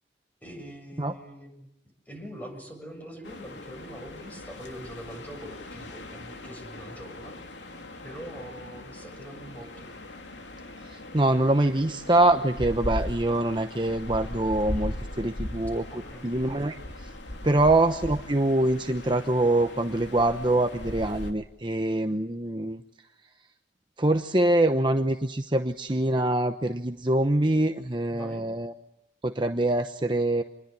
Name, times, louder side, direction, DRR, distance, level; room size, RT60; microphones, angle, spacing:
voice 1, 0.4-1.7 2.1-7.3 8.0-9.9 15.9-16.3 17.5-17.7 28.1-28.4, equal, 10° left, 4 dB, 7.1 m, -43 dB
sound 1, 3.2-21.3, left 1 dB, 90° left, 2.9 m, -39 dB
voice 2, 11.1-15.8 16.2-16.7 17.4-22.8 24.0-28.7 29.2-30.4, right 1 dB, 25° right, 6 dB, 0.9 m, -24 dB
27.5 x 21.5 x 9.9 m, 0.85 s
head